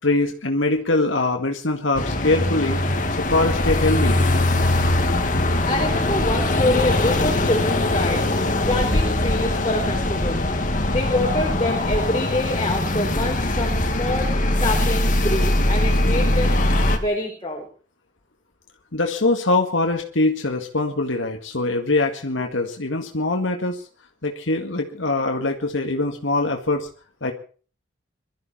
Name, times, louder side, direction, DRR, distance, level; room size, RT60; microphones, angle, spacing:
voice 1, 0.0-2.8 3.2-4.2 18.9-23.8 24.2-26.9 27.2-27.3, left 2 dB, 90° left, 3 dB, 1.9 m, -23 dB
sound 1, 1.9-17.0, left 1 dB, 45° left, 2.1 m, -21 dB
voice 2, 5.7-8.2 8.7-10.4 10.9-16.6 16.9-17.7, left 1 dB, 25° left, -1 dB, 3.7 m, -26 dB
23.0 x 13.5 x 4.4 m, 0.40 s
head